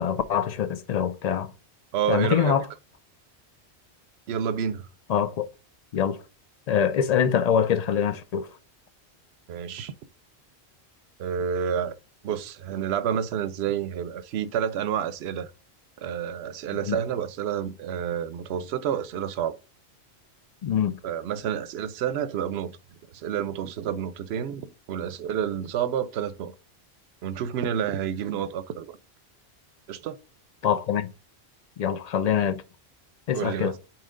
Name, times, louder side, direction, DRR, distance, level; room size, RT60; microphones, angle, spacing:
voice 1, 0.0-1.5 2.1-2.6 5.1-5.5 5.9-6.2 6.7-8.5 16.9-17.0 20.6-21.0 30.6-31.1 31.8-32.6 33.3-33.7, left 8 dB, 60° left, 0.4 m, -24 dB
voice 2, 1.9-2.6 4.3-4.9 9.5-9.9 11.2-12.0 12.2-15.5 16.0-19.6 21.0-22.8 23.1-26.5 27.2-29.0 29.9-30.2 33.3-33.8, right 8 dB, 75° right, 0.8 m, -29 dB
8.7 x 3.1 x 3.7 m
omnidirectional pair, 1.1 m